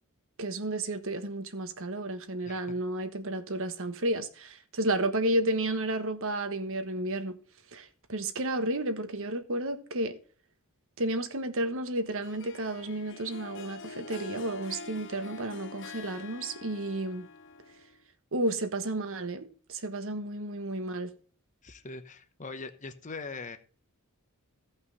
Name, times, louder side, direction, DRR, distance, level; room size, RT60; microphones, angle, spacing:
voice 1, 0.4-7.4 7.7-10.2 11.0-17.3 18.3-21.1, right 1 dB, 60° right, 1.4 m, -32 dB
Harp, 12.2-18.0, left 4 dB, 55° left, 0.9 m, -45 dB
voice 2, 21.6-23.6, left 3 dB, 35° left, 1.0 m, -41 dB
16.0 x 5.6 x 4.1 m
head